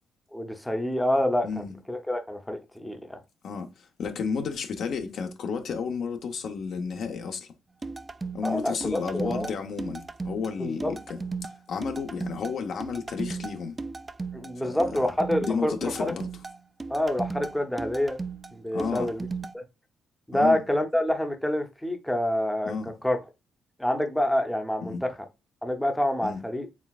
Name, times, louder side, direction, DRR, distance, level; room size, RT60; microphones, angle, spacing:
voice 1, 0.3-3.2 8.4-9.5 10.6-10.9 14.3-15.7 16.0-16.1 16.9-18.2 18.5-19.3 19.5-19.6 20.3-23.2 23.8-25.1 25.6-26.7, left 1 dB, 5° left, 0.7 m, -27 dB
voice 2, 1.4-1.7 3.4-7.5 8.3-13.8 14.6-15.1 15.4-16.3 18.7-19.1 20.3-20.6 22.6-22.9 24.8-25.0 26.2-26.4, left 5 dB, 65° left, 0.7 m, -32 dB
sound 1, 7.8-19.5, right 4 dB, 25° right, 0.3 m, -36 dB
4.4 x 3.4 x 2.3 m
cardioid pair, 90°, 0 cm